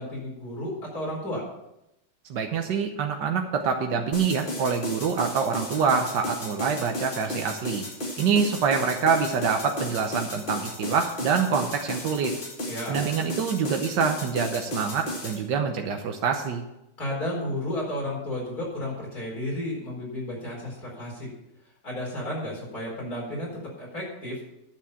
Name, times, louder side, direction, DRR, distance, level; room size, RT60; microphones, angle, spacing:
voice 1, 0.0-1.4 12.7-13.0 17.0-21.3 21.8-23.5 23.8-24.4, left 1 dB, 60° left, -3 dB, 5.0 m, -32 dB
voice 2, 2.3-7.8 8.2-12.3 12.9-16.6, right 6 dB, 90° right, 3 dB, 1.6 m, -26 dB
sound 1, 4.1-15.4, left 1 dB, 30° left, 1.8 m, -34 dB
10.5 x 7.5 x 7.0 m, 0.89 s
omnidirectional pair, 1.8 m